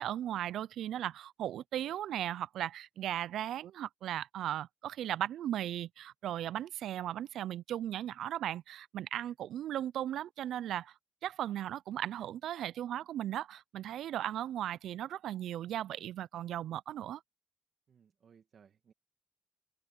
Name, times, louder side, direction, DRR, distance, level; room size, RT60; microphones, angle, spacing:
voice 1, 0.0-10.9 11.2-17.2, right 11 dB, 85° right, 0.3 m, -37 dB
voice 2, 17.9-18.9, right 7 dB, 65° right, 1.8 m, -63 dB
open air
supercardioid pair, 55°, 0 cm